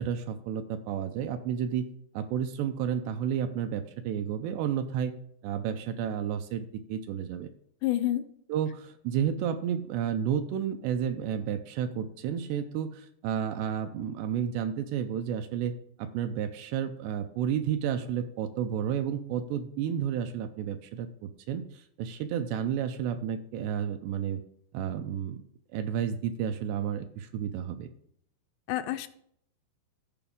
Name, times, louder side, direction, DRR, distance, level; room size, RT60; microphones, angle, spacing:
voice 1, 0.0-1.9 2.1-5.1 5.4-7.5 8.5-24.4 24.7-25.4 25.7-27.9, right 8 dB, 80° right, 8 dB, 2.6 m, -31 dB
voice 2, 7.8-8.2 28.7-29.1, left 14 dB, 80° left, 10 dB, 2.7 m, -28 dB
14.0 x 5.0 x 3.6 m, 0.68 s
omnidirectional pair, 5.0 m